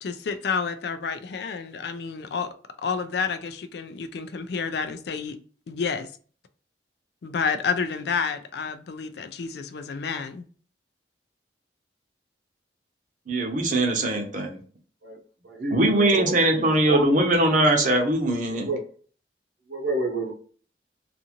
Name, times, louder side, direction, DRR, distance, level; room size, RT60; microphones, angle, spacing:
voice 1, 0.0-2.5 2.8-5.4 5.7-6.1 7.2-10.5, left 5 dB, 60° left, 0.4 m, -29 dB
voice 2, 13.3-14.6 15.7-18.7, right 1 dB, 45° right, 0.7 m, -21 dB
voice 3, 15.4-17.4 18.5-18.9 19.7-20.3, right 2 dB, 70° right, 0.9 m, -30 dB
2.6 x 2.5 x 2.8 m
head